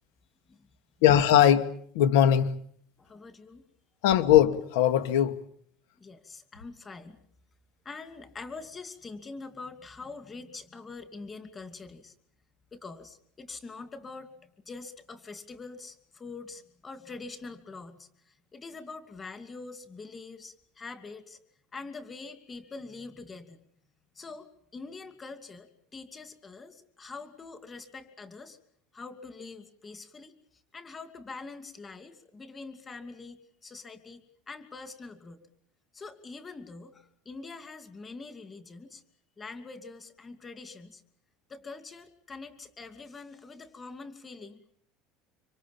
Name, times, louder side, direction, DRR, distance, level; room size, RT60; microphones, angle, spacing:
voice 1, 1.0-2.5 4.0-5.4, left 10 dB, 85° left, 2.3 m, -21 dB
voice 2, 3.0-3.6 6.0-7.2 7.8-12.1 12.7-21.4 21.7-23.6 24.1-28.6 28.9-30.4 30.7-35.5 35.9-39.0 39.4-41.0 41.5-44.7, left 3 dB, 20° left, 2.6 m, -44 dB
26.0 x 25.5 x 7.3 m
cardioid pair, 150°, 0 cm